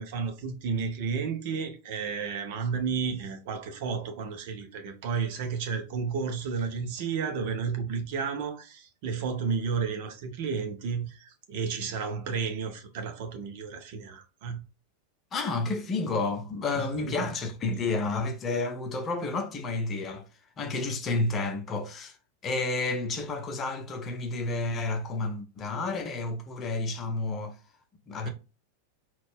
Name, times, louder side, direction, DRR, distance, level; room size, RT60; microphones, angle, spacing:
voice 1, 0.0-14.6 16.7-17.3, right 5 dB, 50° right, 0.9 m, -32 dB
voice 2, 15.3-20.3 20.6-22.2 22.4-27.6 28.1-28.3, left 3 dB, 25° left, 0.7 m, -30 dB
4.0 x 2.5 x 3.5 m
figure-of-eight pair, 90°, 0 cm